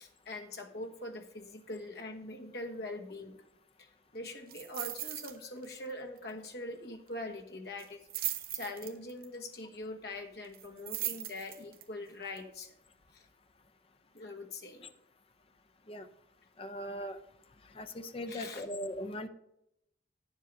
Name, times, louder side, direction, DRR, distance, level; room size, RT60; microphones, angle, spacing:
voice 1, 0.0-3.4 3.8-12.7 13.1-13.2 14.1-14.9 18.3-18.6, left 2 dB, 60° left, 3 dB, 1.2 m, -43 dB
sound 1, 4.5-5.4 5.6-5.9 6.2-6.3 7.8-9.3 10.5-11.8 12.4-12.5, right 12 dB, 50° right, 0.8 m, -38 dB
voice 2, 16.6-17.2 17.6-19.3, equal, 30° left, 9 dB, 0.6 m, -39 dB
9.5 x 7.4 x 5.3 m, 0.79 s
head